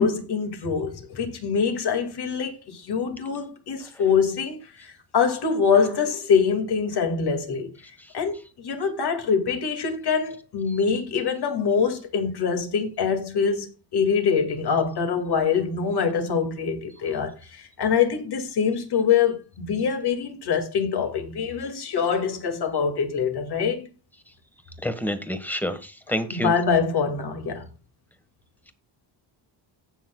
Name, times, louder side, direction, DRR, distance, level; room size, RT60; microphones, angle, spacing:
voice 1, 0.0-7.7 8.1-23.9 26.3-27.7, left 6 dB, 55° left, 2.3 m, -24 dB
voice 2, 24.8-26.5, equal, 5° left, 1.4 m, -28 dB
17.5 x 6.2 x 2.3 m
cardioid pair, 115°, 48 cm